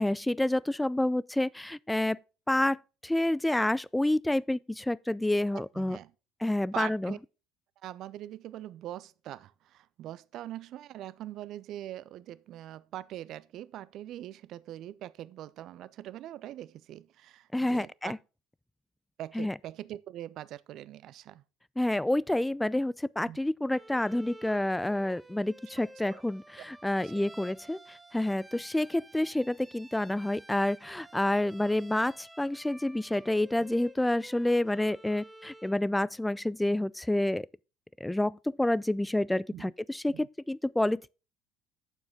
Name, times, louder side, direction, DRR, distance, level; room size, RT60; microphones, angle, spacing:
voice 1, 0.0-2.2 2.5-6.0 6.4-7.1 17.5-18.2 19.3-19.5 21.8-37.5 38.0-41.1, left 1 dB, 5° left, 0.3 m, -29 dB
voice 2, 5.5-6.1 6.7-7.2 7.8-18.1 19.2-21.4 23.2-23.4 26.1-26.2 27.0-27.1 33.6-33.7 39.5-39.7 40.1-40.3, right 13 dB, 55° right, 0.4 m, -42 dB
Bowed string instrument, 23.7-35.8, right 1 dB, 10° right, 0.8 m, -52 dB
9.0 x 7.1 x 3.7 m
hypercardioid pair, 65°, 0 cm